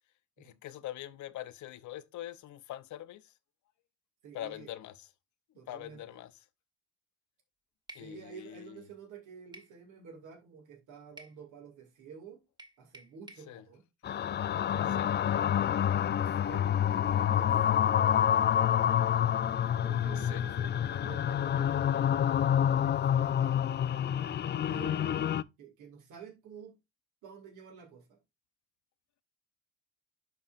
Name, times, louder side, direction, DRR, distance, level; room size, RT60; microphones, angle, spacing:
voice 1, 0.4-3.3 4.3-5.1 5.7-6.3 7.9-8.8 13.5-13.6 14.9-15.1 20.1-20.4 24.6-24.8, left 13 dB, 75° left, 0.7 m, -43 dB
voice 2, 4.2-4.7 5.6-6.2 7.9-12.4 12.8-13.8 14.7-15.4 16.0-19.1 19.7-22.3 22.6-23.7 24.6-26.8 27.2-28.2, right 6 dB, 90° right, 2.2 m, -50 dB
sound 1, 7.9-8.1 9.5-9.8 11.2-11.4 12.6-13.5, right 1 dB, 15° right, 1.3 m, -51 dB
sound 2, 14.0-25.4, left 9 dB, 35° left, 0.4 m, -28 dB
11.5 x 4.2 x 2.4 m
cardioid pair, 90°, 30 cm